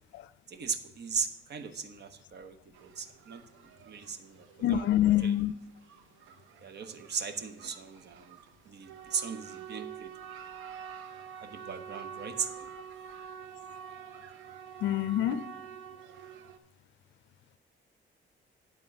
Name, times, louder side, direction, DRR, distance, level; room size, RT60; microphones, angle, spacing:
voice 1, 0.5-3.4 3.8-4.8 5.2-5.3 6.6-8.4 8.7-10.1 11.4-12.5, right 6 dB, 60° right, 1.0 m, -37 dB
sound 1, 2.7-16.6, right 8 dB, 85° right, 0.6 m, -47 dB
voice 2, 4.6-5.5 14.8-15.5, left 11 dB, 70° left, 0.4 m, -26 dB
9.9 x 3.8 x 7.3 m
cardioid pair, 90°, 20 cm